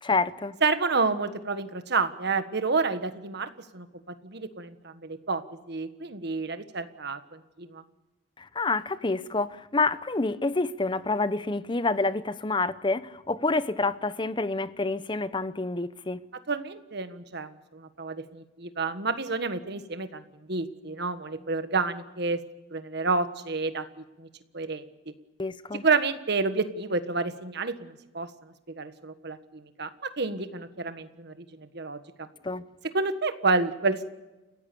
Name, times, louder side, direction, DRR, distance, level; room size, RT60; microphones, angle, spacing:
voice 1, 0.0-0.6 8.4-16.2 25.4-25.8 32.4-32.6, left 3 dB, 25° left, 0.8 m, -28 dB
voice 2, 0.6-3.9 4.2-5.4 5.7-7.8 16.5-20.2 20.5-22.4 22.7-23.8 24.2-24.3 24.5-24.8 25.8-32.3 32.9-34.0, right 4 dB, 60° right, 1.5 m, -29 dB
29.5 x 16.0 x 7.0 m
head